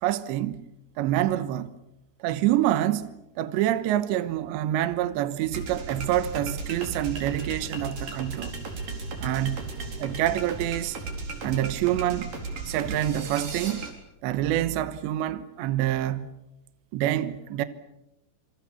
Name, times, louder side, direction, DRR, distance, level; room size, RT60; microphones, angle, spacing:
voice 1, 0.0-0.6 1.0-1.7 2.2-3.1 3.4-8.5 9.2-9.7 10.0-11.0 11.4-12.3 12.6-13.8 14.2-16.3 16.9-17.6, right 13 dB, 75° right, 3.2 m, -26 dB
sound 1, 5.5-13.9, right 3 dB, 45° right, 5.5 m, -35 dB
28.0 x 27.0 x 7.1 m
omnidirectional pair, 5.6 m